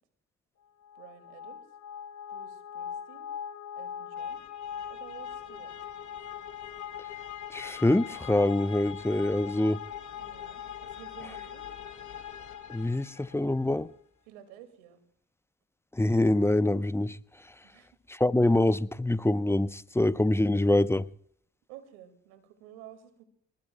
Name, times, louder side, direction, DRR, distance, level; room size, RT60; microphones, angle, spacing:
sound 1, 0.8-13.6, left 9 dB, 60° left, 2.3 m, -41 dB
voice 1, 1.0-1.6 2.3-3.3 3.8-4.4 4.9-5.7 10.1-11.7 14.3-15.0 17.6-17.9 21.7-23.2, right 11 dB, 85° right, 2.2 m, -51 dB
voice 2, 7.5-9.8 12.7-13.9 15.9-17.2 18.1-21.1, left 1 dB, 5° left, 0.7 m, -25 dB
27.5 x 20.5 x 2.2 m
hypercardioid pair, 50°, 34 cm